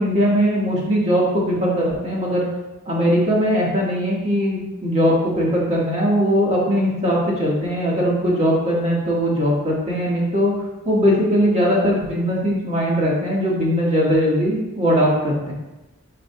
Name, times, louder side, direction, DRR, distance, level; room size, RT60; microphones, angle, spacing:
voice 1, 0.0-2.4 2.9-10.5 10.9-15.5, equal, 35° right, -5 dB, 1.8 m, -20 dB
10.0 x 5.1 x 2.4 m, 1.0 s
head